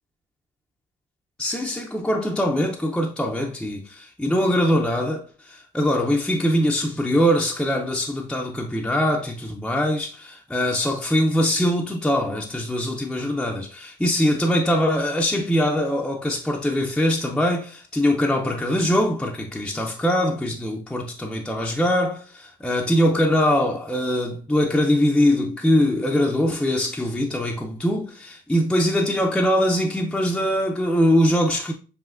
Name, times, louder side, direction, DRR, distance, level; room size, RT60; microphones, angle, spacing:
voice 1, 1.4-31.7, equal, 5° left, 0.5 m, -22 dB
7.3 x 2.7 x 2.5 m
cardioid pair, 110°, 17 cm